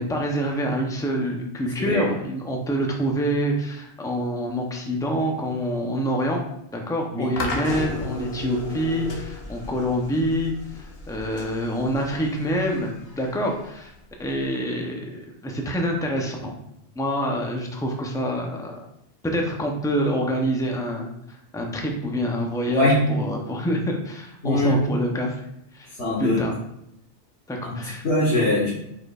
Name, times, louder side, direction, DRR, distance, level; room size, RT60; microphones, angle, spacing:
voice 1, 0.0-6.4 6.7-13.9 14.2-16.5 17.0-18.8 19.2-21.1 21.5-25.4 25.7-25.9 26.2-26.5 27.5-28.0, equal, 5° left, 1 dB, 0.4 m, -26 dB
sound 1, 7.4-14.4, left 1 dB, 60° left, 1.0 m, -35 dB
voice 2, 24.4-24.8 26.0-26.4 27.6-27.8 28.0-28.7, left 1 dB, 80° left, -10 dB, 1.6 m, -21 dB
4.9 x 4.3 x 2.4 m, 0.81 s
omnidirectional pair, 1.2 m